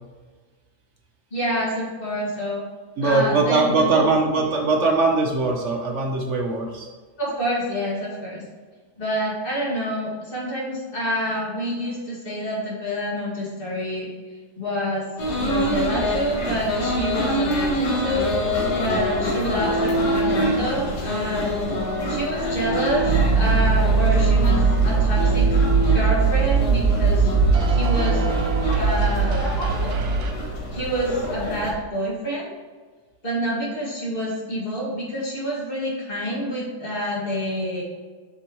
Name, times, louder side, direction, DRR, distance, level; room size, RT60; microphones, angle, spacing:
voice 1, 1.3-2.6 3.0-4.0 7.2-8.5 9.0-14.1 14.6-15.1 15.4-18.4 18.8-21.6 22.1-23.1 23.3-25.5 25.9-27.3 27.7-28.2 28.8-29.5 29.8-29.9 30.7-32.5 33.2-37.8, equal, 35° left, -5 dB, 2.1 m, -27 dB
voice 2, 3.0-6.9, right 3 dB, 55° right, 1 dB, 0.9 m, -21 dB
sound 1, 15.2-31.7, equal, 75° left, 1.8 m, -25 dB
sound 2, 23.0-30.3, right 5 dB, 75° right, 0.5 m, -20 dB
7.4 x 6.0 x 3.0 m, 1.4 s
omnidirectional pair, 1.8 m